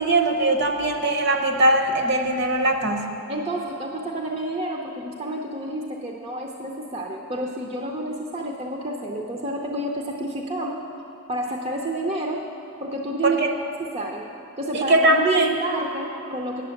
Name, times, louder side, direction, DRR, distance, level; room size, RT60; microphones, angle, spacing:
voice 1, 0.0-3.1 13.2-13.5 14.7-15.6, right 2 dB, 50° right, 5 dB, 0.8 m, -20 dB
voice 2, 3.3-10.8 11.3-12.4 12.8-14.2 14.6-16.6, right 1 dB, 30° right, 0 dB, 0.6 m, -30 dB
9.5 x 7.2 x 7.0 m, 2.8 s
head